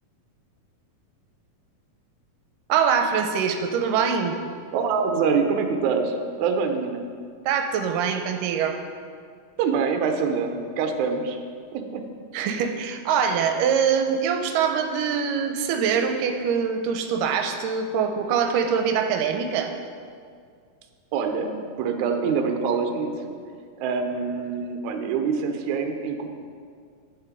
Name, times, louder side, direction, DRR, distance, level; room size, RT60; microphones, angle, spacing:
voice 1, 2.7-4.4 7.5-8.8 12.3-19.7, right 7 dB, 90° right, 5 dB, 2.3 m, -23 dB
voice 2, 4.7-7.0 9.6-11.4 11.7-12.1 21.1-21.5 21.8-23.4 23.8-26.3, right 5 dB, 70° right, 5 dB, 2.0 m, -25 dB
9.8 x 7.6 x 5.1 m, 2.2 s
omnidirectional pair, 3.8 m